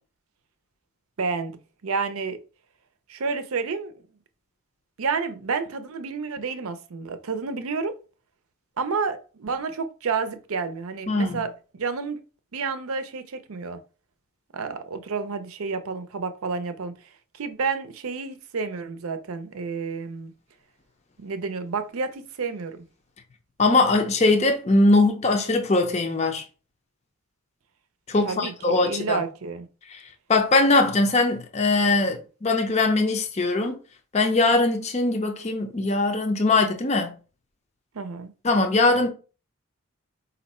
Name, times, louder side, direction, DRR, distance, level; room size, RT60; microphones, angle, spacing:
voice 1, 1.2-2.4 3.1-4.0 5.0-8.0 8.8-12.2 12.5-13.8 14.5-20.3 21.2-22.8 28.2-29.7 37.9-38.3, right 4 dB, 80° right, 0.6 m, -30 dB
voice 2, 11.1-11.4 23.6-26.4 28.1-29.2 30.3-33.8 34.1-37.1 38.4-39.1, left 2 dB, 30° left, 0.5 m, -21 dB
4.2 x 2.7 x 4.2 m
head